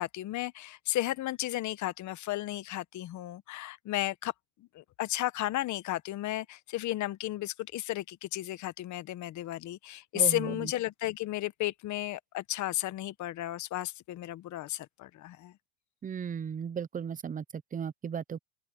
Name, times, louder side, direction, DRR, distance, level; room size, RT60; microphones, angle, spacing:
voice 1, 0.0-4.3 4.7-15.5, left 15 dB, 45° left, 1.2 m, -33 dB
voice 2, 10.1-10.7 16.0-17.4 17.7-18.4, right 7 dB, 20° right, 0.8 m, -35 dB
open air
supercardioid pair, 115°, 41 cm